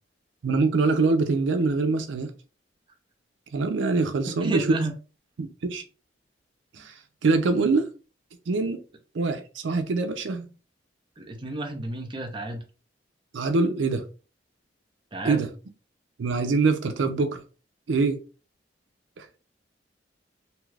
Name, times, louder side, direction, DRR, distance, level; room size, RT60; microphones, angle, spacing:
voice 1, 0.4-2.3 3.5-4.7 5.4-5.8 6.7-6.9 7.2-7.9 8.5-8.8 9.1-10.5 13.3-14.0 15.2-15.5 16.2-17.4 17.9-18.2 19.2-19.3, right 3 dB, 85° right, 0.5 m, -24 dB
voice 2, 4.4-4.9 6.8-6.9 11.2-12.6 15.1-15.4, right 2 dB, 25° right, 0.6 m, -31 dB
2.8 x 2.3 x 3.2 m
head